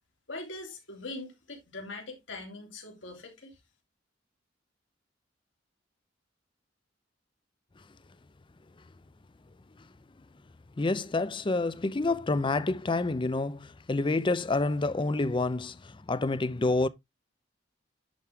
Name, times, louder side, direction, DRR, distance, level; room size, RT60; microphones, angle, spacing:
voice 1, 0.3-3.5, left 2 dB, 80° left, 3.2 m, -42 dB
voice 2, 10.8-16.9, left 2 dB, 25° left, 0.5 m, -28 dB
10.0 x 4.6 x 3.5 m
head